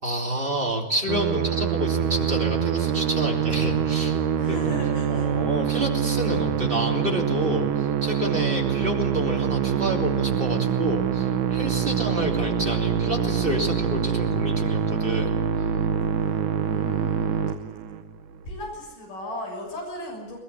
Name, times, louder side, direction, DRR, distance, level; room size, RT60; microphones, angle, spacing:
voice 1, 0.0-4.2 4.5-4.7 5.1-15.4, equal, 15° right, 2 dB, 3.3 m, -29 dB
Musical instrument, 1.1-18.2, right 8 dB, 65° right, 2.6 m, -25 dB
voice 2, 4.4-5.3 5.7-6.0 8.9-9.0 11.9-12.5 16.2-17.4 18.5-20.4, left 1 dB, 65° left, -1 dB, 8.3 m, -37 dB
21.0 x 21.0 x 9.8 m, 1.2 s
omnidirectional pair, 4.1 m